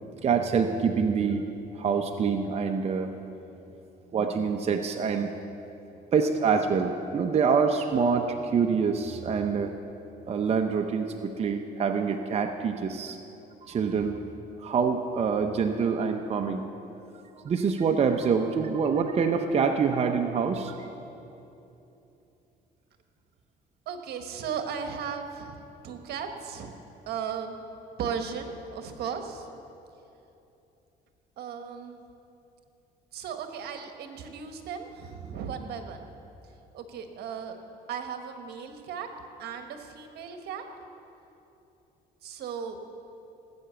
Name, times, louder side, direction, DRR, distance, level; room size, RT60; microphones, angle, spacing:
voice 1, 0.2-1.4 1.7-3.1 4.1-5.3 6.1-9.7 10.3-13.2 13.6-14.2 14.6-16.6 17.4-20.9, right 5 dB, 40° right, 5 dB, 0.8 m, -26 dB
voice 2, 23.9-26.7 27.1-27.6 28.0-29.5 31.4-32.0 33.1-36.1 36.7-37.6 37.9-39.1 39.4-40.6 42.2-42.8, right 7 dB, 70° right, 6 dB, 1.4 m, -36 dB
18.0 x 8.9 x 6.9 m, 2.9 s
cardioid pair, 110°, 17 cm